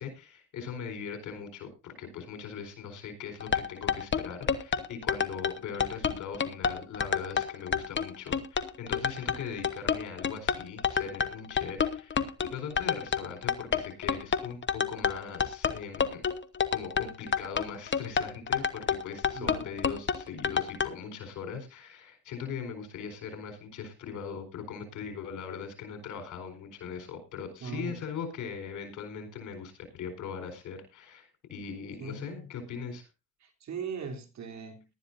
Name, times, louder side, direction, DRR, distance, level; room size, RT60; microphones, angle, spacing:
voice 1, 0.0-16.3 16.7-33.0, left 6 dB, 80° left, 4.4 m, -40 dB
sound 1, 3.4-20.9, left 7 dB, 40° left, 1.2 m, -28 dB
voice 2, 19.3-19.7 27.6-28.0 32.0-32.5 33.4-34.8, right 5 dB, 65° right, 3.4 m, -39 dB
18.5 x 12.0 x 2.6 m
cardioid pair, 90°, 30 cm